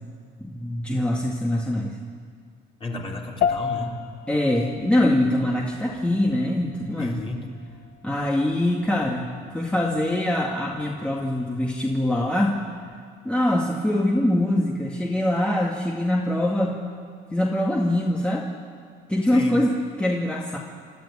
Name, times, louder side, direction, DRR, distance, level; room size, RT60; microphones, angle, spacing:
voice 1, 0.4-2.0 4.3-7.2 8.0-12.6 13.2-16.8 17.3-18.5 19.1-20.6, left 1 dB, 5° left, -2 dB, 2.1 m, -23 dB
voice 2, 2.8-4.0 7.0-7.5 19.3-19.7, left 2 dB, 30° left, -1 dB, 4.0 m, -33 dB
sound 1, 3.4-13.0, left 7 dB, 75° left, 1.0 m, -34 dB
27.5 x 13.5 x 9.9 m, 2.1 s
cardioid pair, 110°, 17 cm